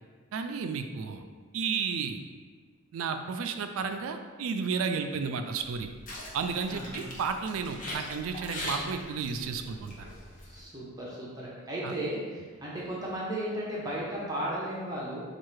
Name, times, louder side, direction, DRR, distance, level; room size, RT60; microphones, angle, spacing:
voice 1, 0.3-1.2 1.5-2.2 2.9-5.9 6.3-10.1 11.8-11.9, right 5 dB, 75° right, 7 dB, 0.3 m, -32 dB
sound 1, 5.7-10.6, left 1 dB, 40° left, 0.7 m, -41 dB
voice 2, 6.7-7.1 10.5-15.2, right 1 dB, 20° right, -6 dB, 0.6 m, -35 dB
4.5 x 2.4 x 3.1 m, 1.5 s
head